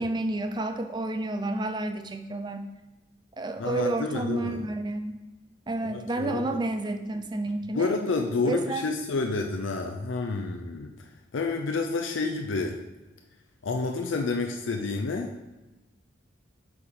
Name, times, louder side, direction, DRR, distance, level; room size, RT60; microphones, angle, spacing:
voice 1, 0.0-2.7 3.4-5.2 5.7-7.9 8.4-8.8, right 2 dB, 20° right, 7 dB, 0.4 m, -30 dB
voice 2, 3.6-4.6 5.8-6.6 7.7-10.9 11.3-12.8 13.6-15.4, left 3 dB, 80° left, 3 dB, 0.5 m, -29 dB
7.7 x 4.7 x 3.8 m, 1.1 s
head